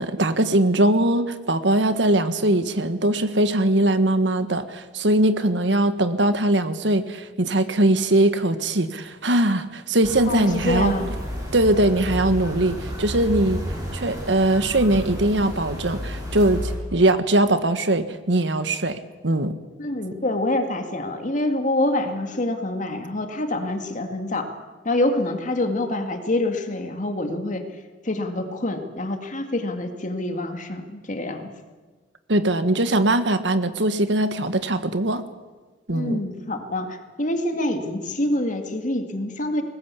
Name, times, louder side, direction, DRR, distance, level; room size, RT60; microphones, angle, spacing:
voice 1, 0.0-10.9 11.5-13.6 13.9-19.5 32.3-35.2 35.9-36.2, right 1 dB, 75° right, 11 dB, 1.5 m, -21 dB
sound 1, 10.0-16.8, equal, 20° right, 6.5 m, -31 dB
voice 2, 10.3-11.1 19.8-24.5 24.8-27.6 28.0-31.5 35.9-39.6, left 1 dB, 45° left, 6 dB, 2.2 m, -26 dB
21.5 x 19.0 x 8.5 m, 1.3 s
head